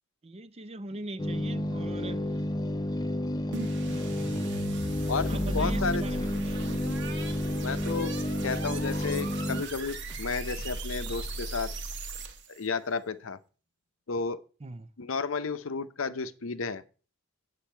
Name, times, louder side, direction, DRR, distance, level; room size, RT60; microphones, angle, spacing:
voice 1, 0.2-2.2 5.3-6.5 14.6-14.9, right 1 dB, 30° right, 0.6 m, -40 dB
sound 1, 1.2-9.6, left 1 dB, 20° left, 0.6 m, -31 dB
sound 2, 3.5-12.6, right 2 dB, 60° right, 1.3 m, -37 dB
voice 2, 5.1-6.0 7.6-8.2 8.4-11.7 12.5-13.4 14.1-14.4 15.0-16.8, left 4 dB, 70° left, 0.7 m, -32 dB
sound 3, 5.2-11.4, equal, 10° right, 0.9 m, -51 dB
8.8 x 8.3 x 4.4 m
head